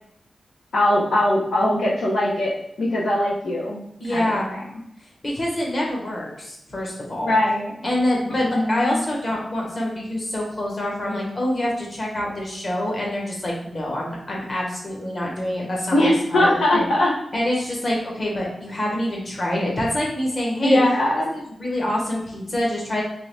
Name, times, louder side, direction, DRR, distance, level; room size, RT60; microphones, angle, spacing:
voice 1, 0.7-3.8 4.1-4.6 7.2-7.7 8.5-9.0 15.9-17.1 20.6-21.3, left 1 dB, 90° left, -4 dB, 0.9 m, -20 dB
voice 2, 4.0-4.5 5.2-7.3 7.8-16.9 17.3-20.8 21.3-23.0, left 1 dB, 40° left, -2 dB, 1.3 m, -26 dB
3.8 x 3.0 x 3.3 m, 0.81 s
wide cardioid pair, 135°, 0 cm